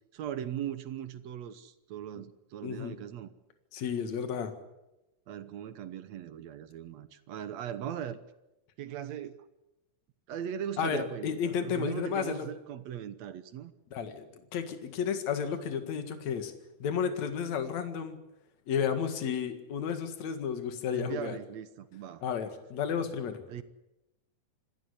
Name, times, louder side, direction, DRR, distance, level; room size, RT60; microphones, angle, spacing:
voice 1, 0.1-3.3 5.3-8.2 8.8-9.4 10.3-13.7 20.9-22.2 23.5-23.6, right 10 dB, 70° right, 12 dB, 2.2 m, -39 dB
voice 2, 2.6-3.0 3.7-4.5 10.8-12.5 13.9-16.5 16.8-18.2 18.7-21.4 22.2-23.4, left 7 dB, 65° left, 8 dB, 3.1 m, -32 dB
26.0 x 13.5 x 9.9 m, 0.95 s
omnidirectional pair, 3.4 m